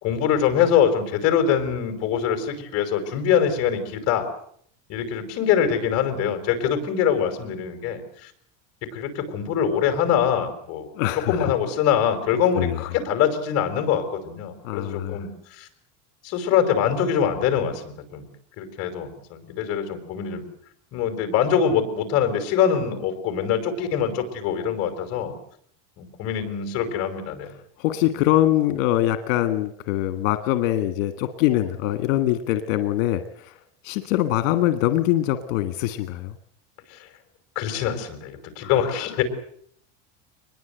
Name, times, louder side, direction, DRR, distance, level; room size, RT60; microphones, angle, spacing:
voice 1, 0.0-4.3 4.9-8.3 8.8-10.9 11.1-15.7 16.2-18.3 18.6-20.4 20.9-25.3 26.0-27.5 36.9-37.1 37.5-39.2, left 8 dB, 40° left, 7 dB, 4.5 m, -24 dB
voice 2, 11.0-11.5 12.6-12.7 14.6-15.2 27.8-33.5 33.8-36.3 38.6-38.7, left 14 dB, 80° left, 10 dB, 1.6 m, -23 dB
24.0 x 21.0 x 8.0 m, 0.64 s
cardioid pair, 175°, 38 cm